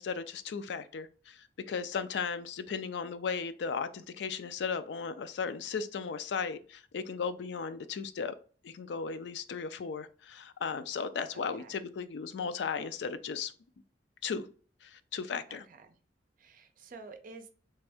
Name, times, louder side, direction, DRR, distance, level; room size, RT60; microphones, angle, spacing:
voice 1, 0.0-8.3 8.6-13.5 14.2-14.5 14.8-15.6, left 5 dB, 70° left, 0.4 m, -36 dB
voice 2, 15.5-16.0 16.4-17.5, right 3 dB, 50° right, 0.5 m, -50 dB
3.3 x 2.6 x 3.4 m
head